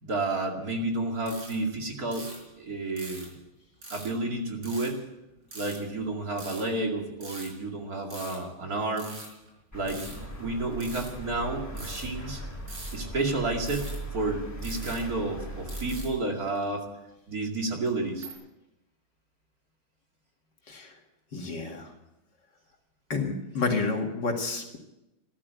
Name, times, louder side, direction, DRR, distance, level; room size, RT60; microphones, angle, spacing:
voice 1, 0.0-2.3 2.6-3.3 3.9-5.0 5.5-9.1 9.7-12.4 12.9-16.9 17.3-18.3, right 2 dB, 45° right, 1 dB, 2.7 m, -31 dB
sound 1, 1.3-1.7 2.1-2.5 3.0-3.4 3.8-4.2 4.6-4.9 5.5-5.8 6.4-6.8 7.2-7.6 8.0-8.5 9.0-10.5 10.8-11.1 11.8-12.2 12.7-13.1 13.6-14.1 14.6-15.4 15.7-16.1 16.5-16.7 17.6-18.3, right 2 dB, 70° right, 5.6 m, -43 dB
sound 2, 9.7-16.0, right 1 dB, 10° left, 1.9 m, -39 dB
voice 2, 21.3-21.9 23.1-24.8, left 3 dB, 55° left, 2 dB, 2.7 m, -30 dB
13.5 x 13.5 x 8.1 m, 0.92 s
omnidirectional pair, 2.3 m